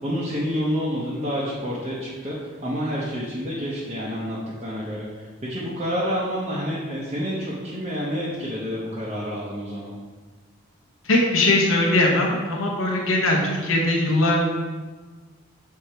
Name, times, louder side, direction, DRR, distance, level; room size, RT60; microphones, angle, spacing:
voice 1, 0.0-10.0, equal, 30° right, -7 dB, 0.9 m, -28 dB
voice 2, 11.0-14.4, left 2 dB, 85° left, -2 dB, 1.0 m, -20 dB
6.5 x 3.5 x 4.4 m, 1.4 s
head